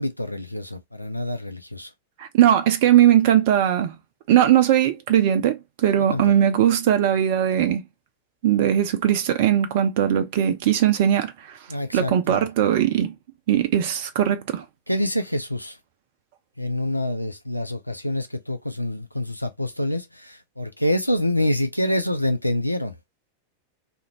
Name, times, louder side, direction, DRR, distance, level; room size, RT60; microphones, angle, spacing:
voice 1, 0.0-1.9 6.1-6.3 11.7-12.5 14.9-15.8 16.6-23.0, left 1 dB, 90° left, 0.4 m, -26 dB
voice 2, 2.2-4.0 4.3-7.8 8.4-11.6 11.9-13.1 13.5-14.6, right 10 dB, 50° right, 0.4 m, -19 dB
2.5 x 2.1 x 3.0 m
figure-of-eight pair, 90°, 0 cm